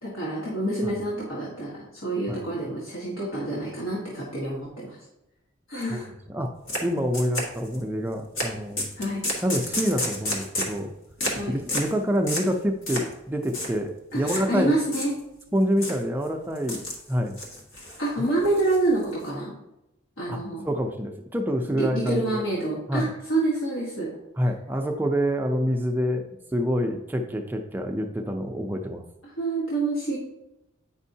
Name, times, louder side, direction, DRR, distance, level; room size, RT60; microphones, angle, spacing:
voice 1, 0.0-5.0 5.7-6.1 9.0-9.2 11.3-11.5 14.1-15.1 18.0-19.5 20.2-20.6 21.6-24.1 29.4-30.2, right 2 dB, 90° left, -6 dB, 1.5 m, -27 dB
sound 1, 6.7-6.8 7.1-7.8 8.4-8.5 8.8-10.8 11.2-11.4 11.7-11.9 12.3-12.5 12.9-13.1 13.4-13.7 14.3-14.5 14.9-15.4 15.8-16.0 16.6-17.0 17.3-18.0 18.4-19.3, left 1 dB, 70° left, 1.6 m, -30 dB
voice 2, 6.8-8.8 9.4-10.9 11.5-14.8 15.5-17.4 18.2-18.3 20.3-22.4 22.9-23.1 24.4-26.2 26.5-29.0, equal, 10° right, 3 dB, 0.4 m, -27 dB
9.0 x 5.3 x 2.7 m, 0.88 s
head